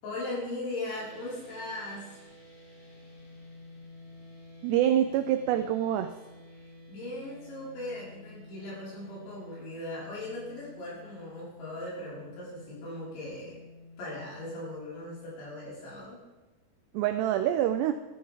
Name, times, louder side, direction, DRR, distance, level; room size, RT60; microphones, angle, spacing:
voice 1, 0.0-2.2 6.5-13.6 14.0-16.2, left 1 dB, 75° left, -8 dB, 7.7 m, -39 dB
sound 1, 0.9-14.7, left 2 dB, 45° left, 3.6 m, -51 dB
voice 2, 4.6-6.1 16.9-17.9, right 11 dB, 85° right, 9 dB, 2.4 m, -26 dB
14.5 x 12.5 x 3.7 m, 1.2 s
omnidirectional pair, 5.4 m